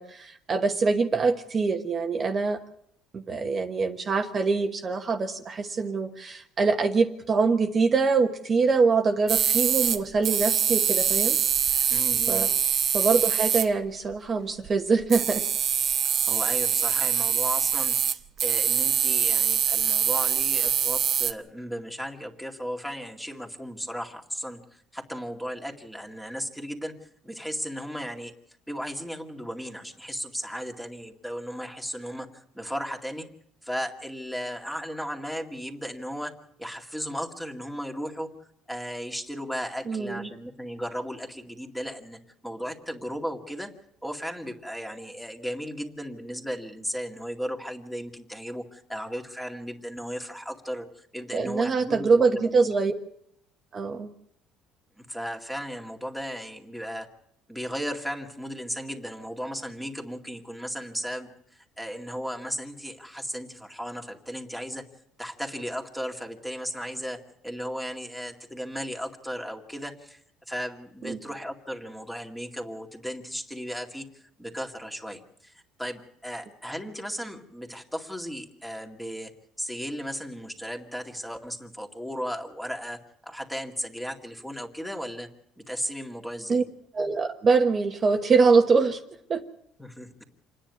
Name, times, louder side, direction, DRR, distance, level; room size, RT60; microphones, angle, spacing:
voice 1, 0.0-2.6 3.1-11.4 12.3-12.5 12.9-15.5 39.9-40.2 51.3-52.9 53.7-54.1 71.1-71.2 86.5-86.6 86.9-89.0 89.3-89.4, right 4 dB, 30° right, 4 dB, 1.2 m, -24 dB
sound 1, 9.3-10.0 10.2-13.7 14.7-14.8 15.0-21.3, right 8 dB, 45° right, 1.1 m, -24 dB
voice 2, 11.9-12.5 16.0-18.0 18.4-26.9 27.2-28.3 28.7-33.3 33.6-36.3 36.6-43.7 44.0-52.5 55.0-57.1 57.5-64.8 65.2-70.2 70.5-79.3 79.6-85.3 85.6-86.6 89.8-90.2, equal, 5° left, 2 dB, 2.2 m, -35 dB
27.5 x 10.0 x 9.6 m, 0.72 s
cardioid pair, 130°, 0 cm